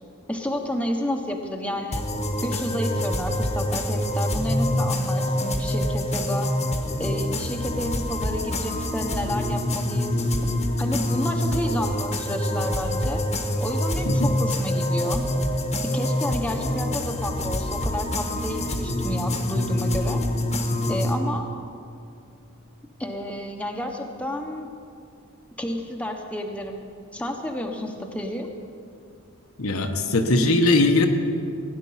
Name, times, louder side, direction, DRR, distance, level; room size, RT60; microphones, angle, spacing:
voice 1, 0.3-2.1 2.4-6.5 7.0-10.5 10.8-13.2 13.6-15.2 15.9-20.2 20.9-21.5 23.0-24.7 25.6-26.8 27.1-28.5, left 1 dB, 5° left, 2 dB, 1.0 m, -30 dB
sound 1, 1.9-21.1, left 1 dB, 30° left, 1.2 m, -26 dB
voice 2, 29.6-31.1, left 2 dB, 75° left, 5 dB, 1.1 m, -20 dB
16.5 x 9.8 x 5.7 m, 2.4 s
head